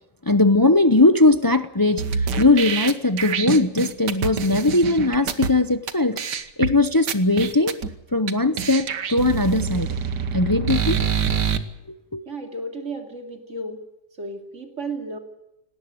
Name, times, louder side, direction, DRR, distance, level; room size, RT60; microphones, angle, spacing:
voice 1, 0.3-2.0 2.4-6.2 6.6-7.7 8.1-9.9 10.3-11.0 12.1-12.2, left 2 dB, 35° left, 0.3 m, -19 dB
sound 1, 2.0-5.5 5.9-6.0 6.2-6.7 7.1-7.9 8.3-8.4 8.6-11.6, right 7 dB, 80° right, 1.9 m, -25 dB
voice 2, 12.3-13.8 14.2-15.2, right 2 dB, 45° right, 3.0 m, -33 dB
19.0 x 18.5 x 9.3 m
omnidirectional pair, 1.8 m